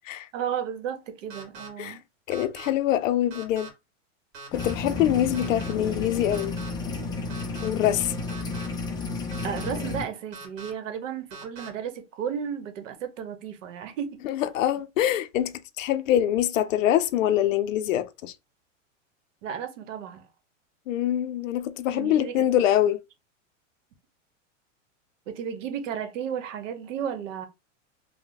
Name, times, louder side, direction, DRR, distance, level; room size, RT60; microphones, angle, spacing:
voice 1, 0.3-2.0 9.4-14.2 19.4-20.2 21.9-22.4 25.3-27.5, right 8 dB, 75° right, 1.0 m, -33 dB
sound 1, 1.3-1.7 2.3-2.7 3.3-3.7 4.3-4.7 5.3-5.7 6.3-6.7 7.3-7.7 8.3-8.7 9.3-9.7 10.3-10.7 11.3-11.7, right 3 dB, 45° right, 1.8 m, -42 dB
voice 2, 2.3-3.7 4.5-6.5 7.6-8.1 14.2-18.3 20.9-23.0, left 11 dB, 80° left, 0.5 m, -24 dB
sound 2, 4.5-10.0, left 3 dB, 10° left, 0.4 m, -32 dB
3.2 x 2.1 x 3.8 m
supercardioid pair, 140°, 38 cm